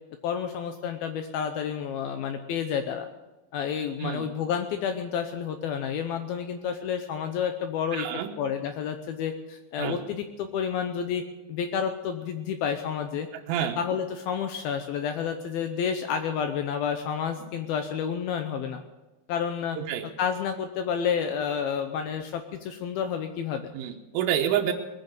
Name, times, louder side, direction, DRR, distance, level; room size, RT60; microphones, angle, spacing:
voice 1, 0.2-3.1 3.5-8.1 8.4-11.2 11.5-13.3 13.8-18.8 19.3-19.8 20.2-23.7, left 7 dB, 85° left, 7 dB, 2.1 m, -30 dB
voice 2, 4.0-4.3 7.9-8.3 9.8-10.0 13.3-13.8 17.4-17.5 19.8-20.1 23.7-24.7, right 10 dB, 90° right, 2 dB, 3.5 m, -28 dB
20.0 x 9.3 x 7.5 m, 1.1 s
omnidirectional pair, 5.4 m